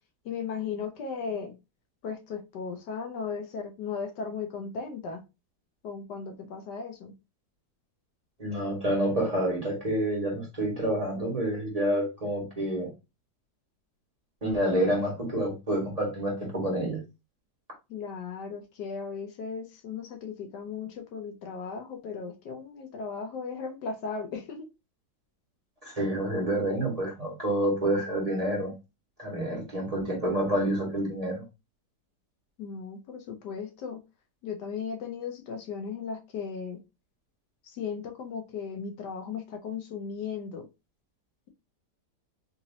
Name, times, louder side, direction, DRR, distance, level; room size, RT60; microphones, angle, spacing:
voice 1, 0.2-1.6 2.0-5.2 5.8-7.1 17.9-24.7 32.6-34.0 34.4-36.8 37.7-40.7, left 5 dB, 80° left, 1.4 m, -36 dB
voice 2, 8.4-12.9 14.4-17.0 25.8-28.8 29.2-31.4, right 1 dB, 20° right, 1.7 m, -28 dB
4.1 x 3.0 x 2.7 m
omnidirectional pair, 1.8 m